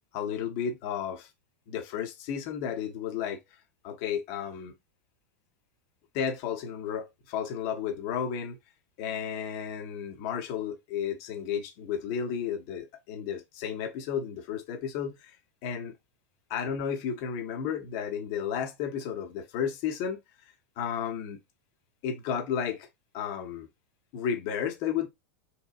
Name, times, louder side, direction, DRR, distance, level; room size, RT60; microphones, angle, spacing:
voice 1, 0.1-1.3 1.7-3.4 3.8-4.7 6.1-8.6 9.0-15.3 15.6-15.9 16.5-20.2 20.8-21.4 22.0-22.9 23.1-23.7 24.1-25.1, left 8 dB, 45° left, 0.8 m, -33 dB
2.9 x 2.1 x 2.4 m
figure-of-eight pair, 90°, 8 cm